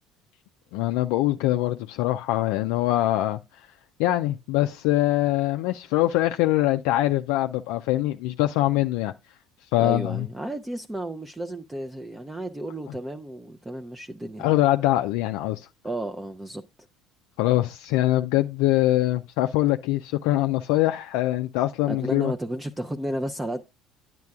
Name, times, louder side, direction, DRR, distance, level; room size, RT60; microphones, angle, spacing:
voice 1, 0.7-3.7 4.0-9.1 9.7-10.3 14.4-15.7 17.4-22.3, left 15 dB, 75° left, 0.3 m, -23 dB
voice 2, 9.8-14.5 15.8-16.6 21.9-23.6, right 1 dB, 15° right, 0.5 m, -32 dB
9.4 x 7.4 x 2.3 m
hypercardioid pair, 75°, 0 cm